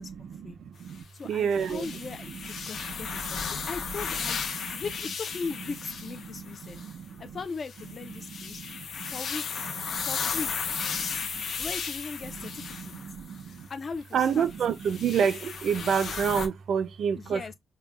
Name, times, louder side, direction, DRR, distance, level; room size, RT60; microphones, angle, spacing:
voice 1, 0.0-3.7 4.5-4.8 6.2-7.4 8.1-9.2 9.8-10.1 10.8-11.4 12.2-13.7 14.1-17.4, right 7 dB, 65° right, 0.4 m, -31 dB
voice 2, 1.1-3.4 3.7-4.4 4.7-6.8 7.2-8.6 9.1-9.7 10.0-10.5 11.6-13.0 13.5-14.5 17.2-17.5, left 4 dB, 35° left, 0.4 m, -38 dB
sound 1, 1.5-6.9 7.6-13.4 14.2-16.5, left 6 dB, 65° left, 0.8 m, -35 dB
5.4 x 2.2 x 2.2 m
wide cardioid pair, 175°, 0 cm